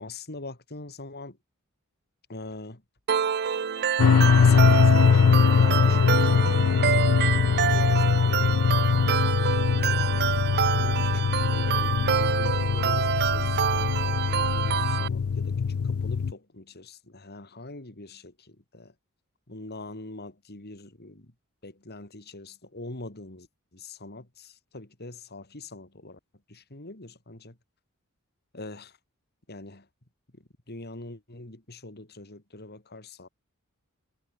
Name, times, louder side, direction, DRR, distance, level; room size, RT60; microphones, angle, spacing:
voice 1, 0.0-1.4 2.3-2.8 4.4-7.3 7.7-8.4 9.1-9.6 10.8-18.9 19.5-21.3 21.6-23.5 23.7-26.2 26.5-27.6 28.5-29.0 29.5-29.9 30.3-33.3, left 2 dB, 50° left, 3.5 m, -43 dB
sound 1, 3.1-15.1, right 8 dB, 50° right, 0.6 m, -27 dB
sound 2, 4.0-16.3, left 6 dB, 75° left, 0.4 m, -22 dB
head